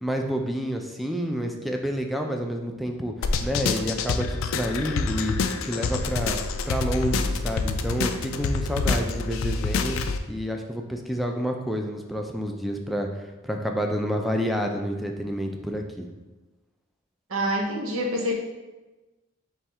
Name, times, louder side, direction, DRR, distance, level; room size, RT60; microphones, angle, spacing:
voice 1, 0.0-3.1 3.4-5.3 5.6-6.4 6.7-10.0 10.3-13.1 13.4-16.1, equal, ahead, 2 dB, 0.4 m, -29 dB
sound 1, 3.2-10.2, left 4 dB, 80° left, 0.3 m, -27 dB
voice 2, 17.3-18.3, equal, 75° right, 0 dB, 0.8 m, -26 dB
4.4 x 3.1 x 3.5 m, 1.1 s
head